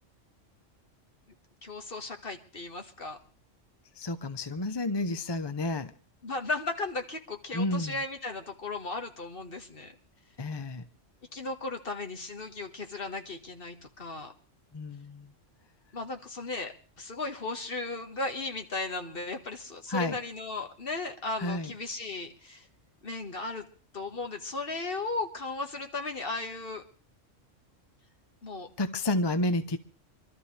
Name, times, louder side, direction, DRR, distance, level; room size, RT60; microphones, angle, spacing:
voice 1, 1.6-3.2 6.2-9.9 11.3-14.3 15.9-22.7 23.0-23.7 23.9-26.8 28.4-28.7, left 3 dB, 45° left, 1.9 m, -36 dB
voice 2, 4.0-5.9 7.5-8.0 10.4-10.8 14.7-15.3 19.9-20.2 21.4-21.7 28.8-29.8, left 2 dB, 25° left, 0.6 m, -30 dB
25.5 x 13.0 x 3.4 m
omnidirectional pair, 1.3 m